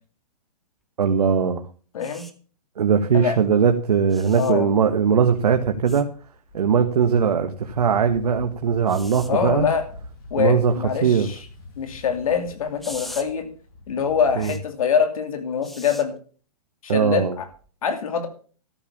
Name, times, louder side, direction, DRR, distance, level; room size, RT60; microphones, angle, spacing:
voice 1, 1.0-1.6 2.8-6.1 6.5-9.7 10.4-10.7 11.0-11.3 14.4-14.5 16.9-17.3, right 7 dB, 85° right, 5 dB, 1.4 m, -20 dB
voice 2, 1.9-2.3 3.1-3.4 4.4-4.7 9.3-9.8 10.3-11.5 11.8-13.5 13.9-16.1 16.8-17.5 17.8-18.3, left 7 dB, 65° left, 7 dB, 2.6 m, -24 dB
sound 1, 2.0-2.3 4.1-4.5 5.9-6.0 8.9-9.3 12.8-13.2 14.4-14.6 15.6-16.0 17.5-17.7, equal, ahead, 0.5 m, -40 dB
sound 2, 4.8-14.5, left 2 dB, 35° left, 5.8 m, -44 dB
13.0 x 7.2 x 7.1 m, 0.40 s
hypercardioid pair, 165°, 19 cm